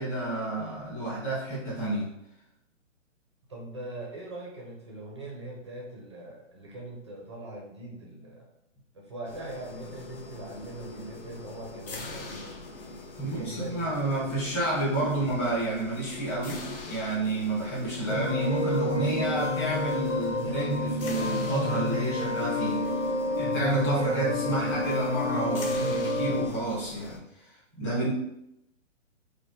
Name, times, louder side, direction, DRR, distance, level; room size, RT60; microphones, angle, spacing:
voice 1, 0.0-2.1 13.2-22.8 23.4-28.1, right 2 dB, 15° left, -8 dB, 1.0 m, -30 dB
voice 2, 3.5-8.5 8.9-12.6 13.2-13.9, right 1 dB, 25° right, -2 dB, 0.5 m, -41 dB
sound 1, 9.2-27.2, left 3 dB, 45° left, 0.6 m, -43 dB
sound 2, 18.1-26.5, left 2 dB, 85° left, 1.2 m, -29 dB
5.2 x 2.1 x 3.0 m, 0.82 s
hypercardioid pair, 160°, 39 cm